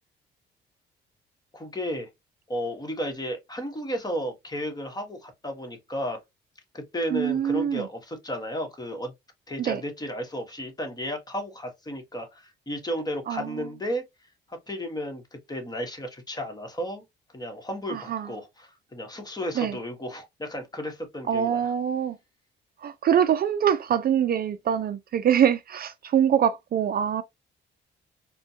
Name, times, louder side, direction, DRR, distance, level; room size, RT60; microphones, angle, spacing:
voice 1, 1.5-2.1 2.5-6.2 6.7-9.1 9.5-14.0 14.5-17.0 17.3-21.7, equal, 20° left, 1.3 m, -33 dB
voice 2, 7.1-7.9 9.6-9.8 13.3-13.6 17.9-18.3 19.6-19.8 21.3-22.2 22.8-27.2, right 9 dB, 50° right, 0.4 m, -24 dB
4.2 x 2.2 x 2.7 m
cardioid pair, 90°, 20 cm